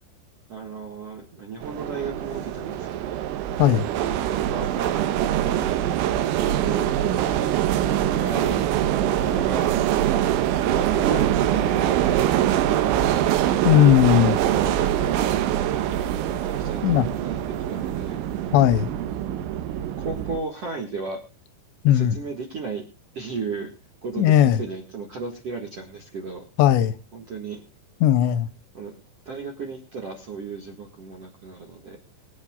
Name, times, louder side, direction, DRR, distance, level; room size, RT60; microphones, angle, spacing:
voice 1, 0.5-3.2 3.8-5.8 6.4-7.5 7.9-8.7 9.0-9.7 10.4-13.9 14.5-17.4 17.7-18.2 20.0-21.2 21.9-22.8 23.1-23.7 24.0-26.4 27.1-27.6 28.7-32.0, right 4 dB, 55° right, 1.7 m, -35 dB
sound 1, 1.6-20.4, right 11 dB, 85° right, 3.2 m, -24 dB
voice 2, 13.6-14.4 16.8-17.1 18.5-18.9 21.8-22.2 24.2-24.6 26.6-26.9 28.0-28.5, left 11 dB, 80° left, 2.8 m, -17 dB
24.0 x 8.3 x 2.3 m
omnidirectional pair, 5.5 m